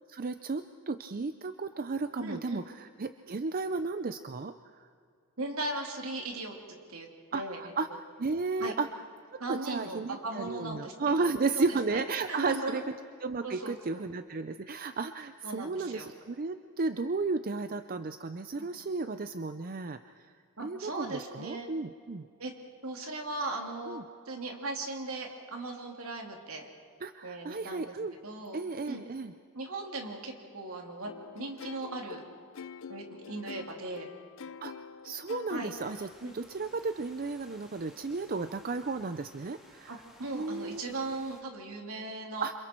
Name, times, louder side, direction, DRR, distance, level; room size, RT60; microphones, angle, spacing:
voice 1, 0.1-4.9 7.3-7.9 8.2-8.9 9.5-12.8 13.2-20.0 20.6-22.3 23.9-24.0 27.0-28.1 28.5-29.3 34.6-34.7 35.0-36.1 36.3-40.0 40.3-40.8 42.4-42.5, right 3 dB, 40° right, 10 dB, 0.5 m, -33 dB
voice 2, 2.2-2.6 5.4-6.5 6.9-7.7 8.6-8.7 9.4-10.9 11.2-12.0 12.3-12.8 13.4-14.0 15.4-16.1 18.5-18.7 20.6-21.7 22.4-22.5 22.8-24.0 24.2-26.7 27.2-28.0 28.2-28.6 28.9-29.0 29.5-32.2 32.9-34.1 35.5-35.7 36.2-36.3 39.9-42.5, right 2 dB, 70° right, 2 dB, 3.0 m, -38 dB
sound 1, 31.0-36.1, left 6 dB, 60° left, 0.5 m, -46 dB
sound 2, 35.6-41.4, equal, ahead, 2.5 m, -58 dB
29.0 x 26.5 x 4.5 m, 2.2 s
head